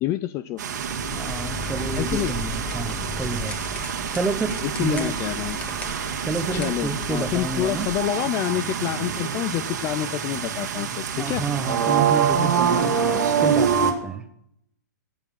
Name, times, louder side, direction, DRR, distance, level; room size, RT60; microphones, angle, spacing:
voice 1, 0.0-0.6 2.0-2.3 4.6-5.6 6.5-11.4, left 14 dB, 30° left, 15 dB, 0.4 m, -27 dB
sound 1, 0.6-13.9, right 7 dB, 70° right, 1.9 m, -26 dB
sound 2, 0.8-8.1, left 2 dB, 15° left, 1.7 m, -36 dB
voice 2, 1.1-3.6 4.1-5.1 6.2-7.9 11.2-14.3, right 4 dB, 10° right, 9 dB, 1.0 m, -30 dB
13.5 x 9.0 x 5.7 m, 0.75 s
hypercardioid pair, 130°, 10 cm